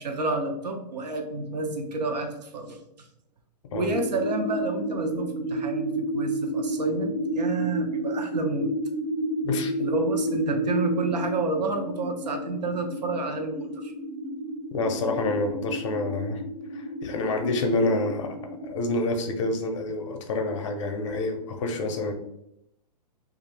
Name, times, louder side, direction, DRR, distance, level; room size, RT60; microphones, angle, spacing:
voice 1, 0.0-3.1 3.7-8.7 9.8-13.9, right 3 dB, 75° right, 4 dB, 0.7 m, -30 dB
sound 1, 3.9-18.9, right 1 dB, 20° right, 0.4 m, -31 dB
voice 2, 14.7-16.4 16.7-18.4 18.6-22.1, left 2 dB, 45° left, 5 dB, 0.6 m, -27 dB
2.6 x 2.4 x 3.2 m, 0.79 s
hypercardioid pair, 145°, 21 cm